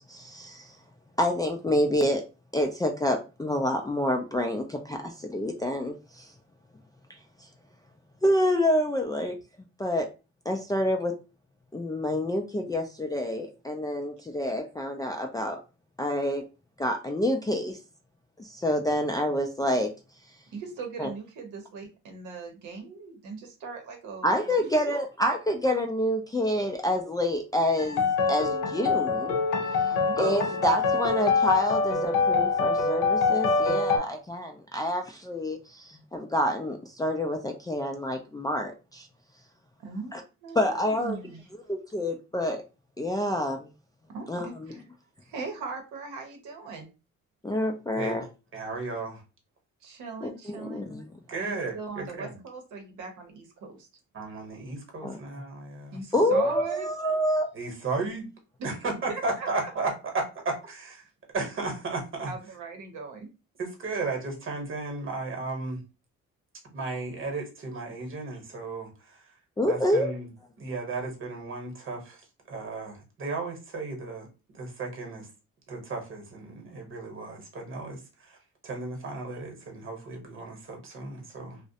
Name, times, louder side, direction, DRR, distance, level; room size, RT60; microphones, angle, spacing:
voice 1, 0.1-0.7 1.2-2.2 2.5-6.3 7.1-7.2 8.2-9.4 9.8-10.1 10.5-11.1 11.7-15.6 16.0-16.5 16.8-17.8 18.4-19.9 21.0-21.1 24.2-29.4 30.2-39.1 40.1-40.2 40.6-41.2 41.7-42.6 43.0-43.7 44.3-44.7 47.4-48.3 50.2-51.0 55.0-55.2 56.1-57.5 69.6-70.1, left 1 dB, 15° left, 0.3 m, -27 dB
voice 2, 20.5-25.1 29.9-30.3 39.8-41.4 44.1-44.8 45.2-46.9 49.8-50.9 51.3-53.9 55.9-56.9 59.1-59.7 62.2-63.3, right 4 dB, 80° right, 0.8 m, -39 dB
sound 1, 27.8-34.0, left 4 dB, 85° left, 0.6 m, -25 dB
voice 3, 48.5-49.2 51.3-52.4 54.1-56.0 57.5-58.3 58.6-61.0 61.3-62.3 63.6-65.8 66.7-69.3 69.7-70.3 70.6-75.3 75.7-78.4 78.6-81.6, right 3 dB, 40° right, 1.0 m, -34 dB
2.3 x 2.0 x 2.7 m
cardioid pair, 90°, 30 cm